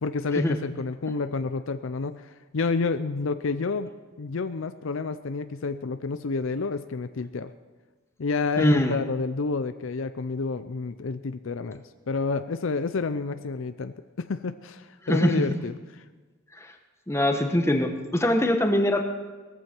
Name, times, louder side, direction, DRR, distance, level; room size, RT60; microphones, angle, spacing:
voice 1, 0.0-7.5 8.2-15.7, left 4 dB, 65° left, 11 dB, 0.5 m, -29 dB
voice 2, 8.6-8.9 15.1-15.6 17.1-19.0, left 1 dB, 15° left, 4 dB, 1.2 m, -23 dB
19.5 x 14.5 x 4.5 m, 1.3 s
head